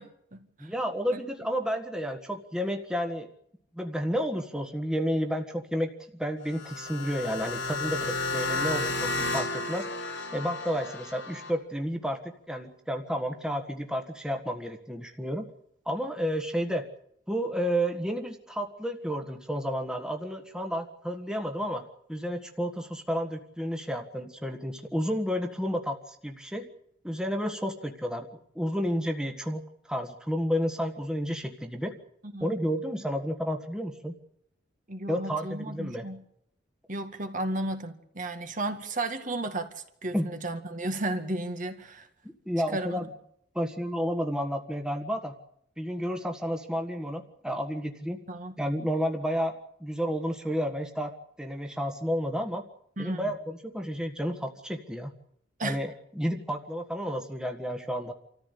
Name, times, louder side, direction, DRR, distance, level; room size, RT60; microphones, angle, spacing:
voice 1, 0.0-0.7 1.1-1.2 32.2-32.5 34.9-36.2 36.9-42.1 42.7-43.0 48.3-48.6 53.0-53.3 55.6-55.8, right 2 dB, 45° right, 7 dB, 2.0 m, -34 dB
voice 2, 0.6-3.3 3.7-9.9 10.3-15.4 15.8-16.8 17.3-21.8 22.1-26.7 27.0-31.9 32.4-34.1 35.1-36.1 40.1-40.3 42.4-43.1 43.5-45.3 45.8-48.2 48.6-52.6 53.0-55.1 55.6-58.1, equal, 5° right, 4 dB, 1.6 m, -31 dB
sound 1, 6.4-11.5, left 2 dB, 90° left, 4.0 m, -32 dB
26.5 x 14.5 x 8.4 m, 0.72 s
head